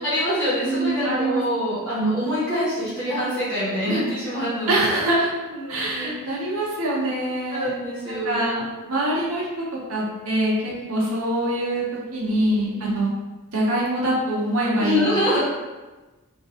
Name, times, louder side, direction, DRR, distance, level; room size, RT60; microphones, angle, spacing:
voice 1, 0.0-5.1 5.4-6.1 7.5-8.5 10.8-11.0 12.7-12.9 14.8-15.4, equal, 10° left, -11 dB, 1.2 m, -25 dB
voice 2, 0.6-1.4 4.7-5.3 5.7-7.7 8.2-9.5 9.9-11.8 12.1-13.1 13.5-15.0, right 1 dB, 70° right, -5 dB, 1.0 m, -24 dB
3.0 x 2.6 x 3.7 m, 1.2 s
head